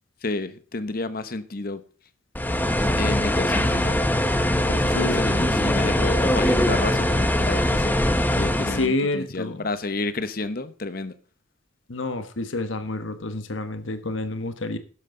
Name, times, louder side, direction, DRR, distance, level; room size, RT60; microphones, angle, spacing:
voice 1, 0.2-1.8 3.0-4.0 4.7-8.0 8.3-11.1, left 3 dB, 45° left, 1.0 m, -30 dB
sound 1, 2.3-8.9, left 1 dB, 10° left, 0.9 m, -22 dB
voice 2, 8.7-9.7 11.9-14.8, left 2 dB, 75° left, 1.2 m, -28 dB
12.5 x 10.5 x 3.9 m
head